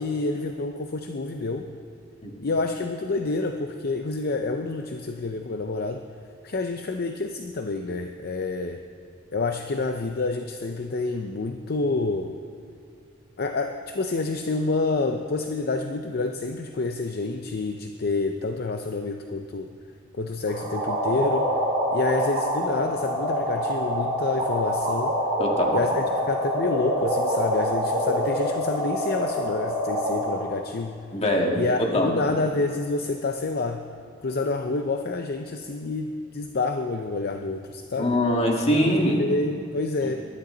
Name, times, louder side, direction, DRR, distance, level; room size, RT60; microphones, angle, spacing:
voice 1, 0.0-1.7 2.4-6.1 6.4-8.8 9.3-12.4 13.4-19.7 20.2-21.5 21.9-25.2 25.7-31.0 31.6-31.8 32.0-33.8 34.2-38.2 38.8-40.2, left 3 dB, 50° left, 5 dB, 0.6 m, -28 dB
sound 1, 20.5-30.4, equal, 55° right, 4.5 m, -26 dB
voice 2, 25.4-25.8 31.1-32.2 38.0-39.2, left 1 dB, 35° left, 0 dB, 2.1 m, -23 dB
20.0 x 13.0 x 3.9 m, 2.4 s
head